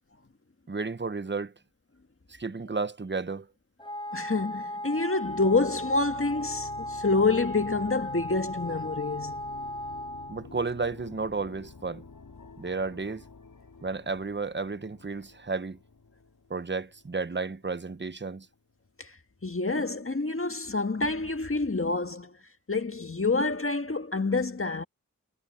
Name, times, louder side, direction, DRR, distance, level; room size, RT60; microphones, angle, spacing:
voice 1, 0.7-1.5 2.3-3.5 10.3-12.0 12.6-13.2 13.8-15.8 16.5-18.5, right 4 dB, 35° right, 1.0 m, -32 dB
Wind instrument woodwind instrument, 3.8-10.4, left 1 dB, 15° left, 6.9 m, -36 dB
voice 2, 4.1-9.4 19.0-19.1 19.4-22.4 22.7-24.8, left 3 dB, 40° left, 1.8 m, -27 dB
sound 1, 5.2-17.9, left 3 dB, 75° left, 5.3 m, -48 dB
cardioid pair, 45°, 34 cm